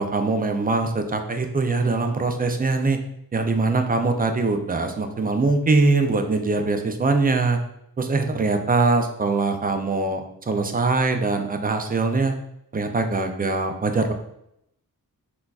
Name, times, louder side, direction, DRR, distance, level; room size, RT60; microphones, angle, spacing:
voice 1, 0.0-3.0 3.3-7.6 8.0-12.3 12.7-14.1, right 3 dB, 25° right, 5 dB, 0.4 m, -22 dB
3.8 x 2.3 x 2.3 m, 0.77 s
cardioid pair, 60°, 38 cm